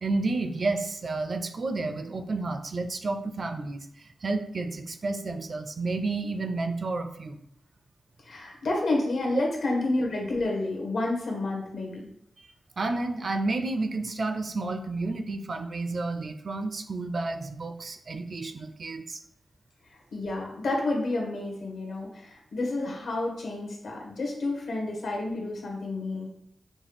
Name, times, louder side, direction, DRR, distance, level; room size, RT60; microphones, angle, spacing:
voice 1, 0.0-7.4 12.4-12.5 12.8-19.2, right 3 dB, 50° right, 7 dB, 0.4 m, -31 dB
voice 2, 8.2-12.0 20.1-26.3, left 2 dB, 80° left, -1 dB, 1.3 m, -30 dB
6.1 x 2.3 x 3.4 m, 0.74 s
wide cardioid pair, 115°, 0 cm